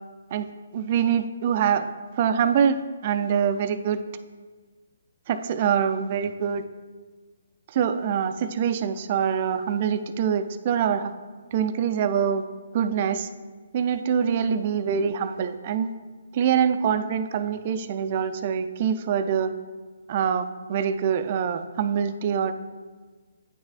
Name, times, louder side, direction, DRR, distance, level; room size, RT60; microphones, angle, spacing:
voice 1, 0.7-1.9 2.2-4.0 5.3-6.6 7.7-11.1 11.5-12.4 12.7-13.3 13.7-15.9 16.3-19.5 20.1-22.5, right 7 dB, 40° right, 9 dB, 0.4 m, -24 dB
9.2 x 6.3 x 2.4 m, 1.4 s
hypercardioid pair, 150°, 0 cm